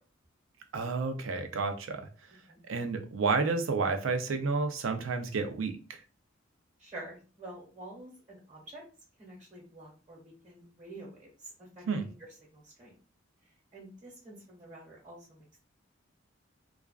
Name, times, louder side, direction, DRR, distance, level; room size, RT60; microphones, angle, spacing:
voice 1, 0.7-2.0 2.7-6.0 11.9-12.1, right 4 dB, 75° right, 7 dB, 0.4 m, -30 dB
voice 2, 6.8-8.8 9.2-12.9 13.7-15.5, right 1 dB, 40° right, -4 dB, 1.0 m, -48 dB
2.4 x 2.2 x 2.3 m, 0.37 s
head